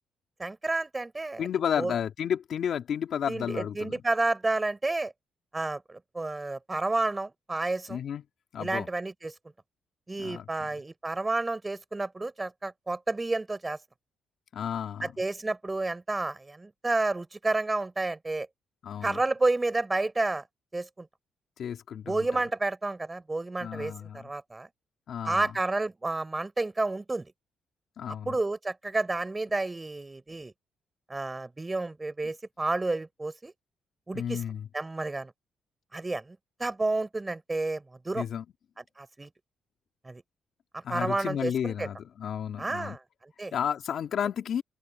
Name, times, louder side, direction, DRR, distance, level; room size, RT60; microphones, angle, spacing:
voice 1, 0.4-1.5 1.8-1.9 3.3-5.1 5.5-8.0 8.6-9.3 10.1-13.8 15.0-18.5 19.0-20.4 20.7-21.1 22.1-24.7 25.2-27.3 28.3-30.5 31.1-33.5 34.1-34.4 34.7-35.3 35.9-38.2 39.0-39.3 40.0-40.2 40.7-41.9 42.6-43.5, right 2 dB, 20° right, 5.4 m, -30 dB
voice 2, 1.4-4.0 7.9-8.2 8.5-8.9 10.2-10.5 14.5-15.1 18.8-19.2 21.6-22.4 23.6-24.3 25.1-25.5 28.0-28.4 34.1-34.7 38.1-38.4 40.8-43.0 43.5-44.6, left 8 dB, 65° left, 2.9 m, -32 dB
open air
cardioid pair, 90°, 0 cm